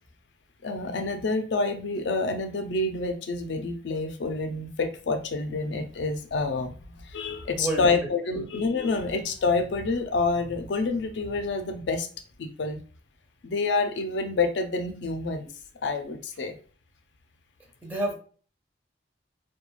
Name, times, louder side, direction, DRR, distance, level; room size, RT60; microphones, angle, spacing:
voice 1, 0.6-12.1 12.4-12.8 13.4-15.5 15.8-16.6, left 3 dB, 65° left, 7 dB, 0.4 m, -28 dB
voice 2, 7.5-8.1 17.8-18.1, right 1 dB, 10° right, 0 dB, 0.5 m, -29 dB
2.3 x 2.2 x 3.1 m, 0.41 s
head